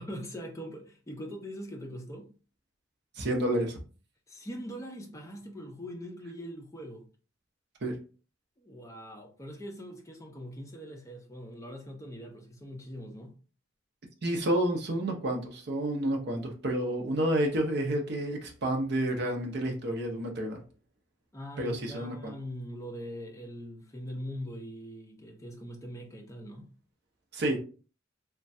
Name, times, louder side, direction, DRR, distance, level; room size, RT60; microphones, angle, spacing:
voice 1, 0.0-2.3 4.3-7.1 8.6-13.4 21.3-26.7, equal, 15° left, 0.5 m, -42 dB
voice 2, 3.2-3.8 7.8-8.0 14.2-20.6 21.6-22.3 27.3-27.6, right 1 dB, 55° right, 0.7 m, -30 dB
3.1 x 2.2 x 2.6 m
head